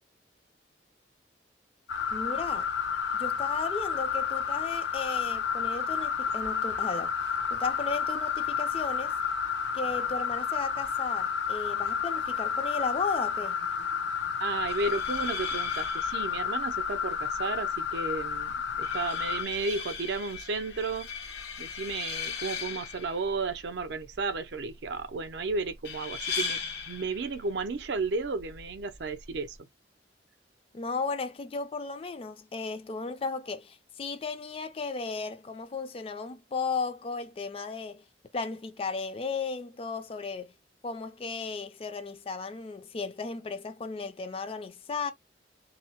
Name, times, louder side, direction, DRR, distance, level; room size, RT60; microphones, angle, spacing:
sound 1, 1.9-19.4, left 6 dB, 85° left, 0.6 m, -31 dB
voice 1, 2.1-2.7 3.1-7.2 7.5-9.1 9.7-13.6 30.7-38.0 38.3-40.5 40.8-45.1, left 4 dB, 30° left, 0.3 m, -35 dB
voice 2, 14.4-21.1 21.6-26.6 26.9-29.6, right 3 dB, 75° right, 0.5 m, -33 dB
sound 2, 14.6-29.6, left 5 dB, 65° left, 0.9 m, -39 dB
2.7 x 2.0 x 2.8 m
head